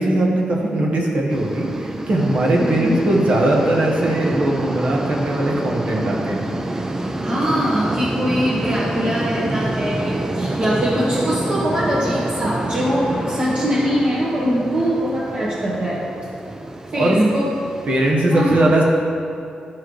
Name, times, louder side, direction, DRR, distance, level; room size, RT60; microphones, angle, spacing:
voice 1, 0.0-6.4 6.7-6.8 16.9-17.2 17.8-18.8, right 1 dB, 60° right, -2 dB, 1.4 m, -19 dB
sound 1, 1.3-18.1, right 2 dB, 20° right, 0.5 m, -27 dB
voice 2, 2.6-3.0 7.2-16.0 16.9-17.5 18.3-18.6, equal, 40° right, -9 dB, 1.6 m, -22 dB
12.5 x 4.6 x 3.2 m, 2.5 s
cardioid pair, 90°, 3 cm